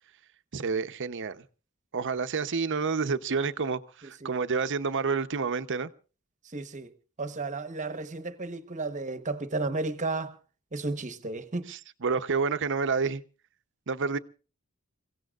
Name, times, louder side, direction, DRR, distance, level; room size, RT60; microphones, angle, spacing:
voice 1, 0.5-1.4 1.9-5.9 11.7-13.2 13.9-14.2, right 5 dB, 60° right, 0.8 m, -29 dB
voice 2, 6.5-6.9 7.2-10.3 10.7-11.7, right 3 dB, 35° right, 1.1 m, -33 dB
29.5 x 16.5 x 2.4 m
head